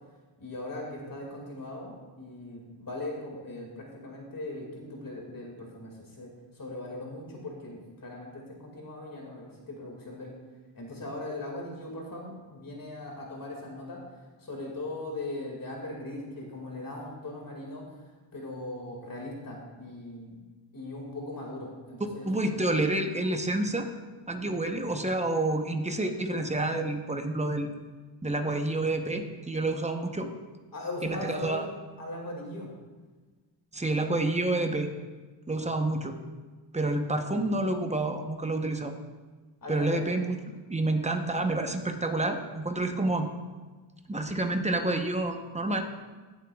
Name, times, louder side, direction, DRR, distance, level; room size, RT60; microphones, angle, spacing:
voice 1, 0.4-10.3 10.7-14.0 14.4-17.9 18.3-20.4 20.7-22.3 30.7-31.7 32.0-32.7 39.6-40.0, left 2 dB, 45° left, -1 dB, 2.1 m, -39 dB
voice 2, 22.0-23.9 24.3-27.7 28.2-30.3 31.0-31.6 33.7-34.9 35.5-36.2 36.7-38.9 39.7-43.3 44.1-45.8, right 2 dB, 15° right, 5 dB, 0.8 m, -29 dB
17.5 x 7.3 x 2.3 m, 1.3 s
wide cardioid pair, 110°, 46 cm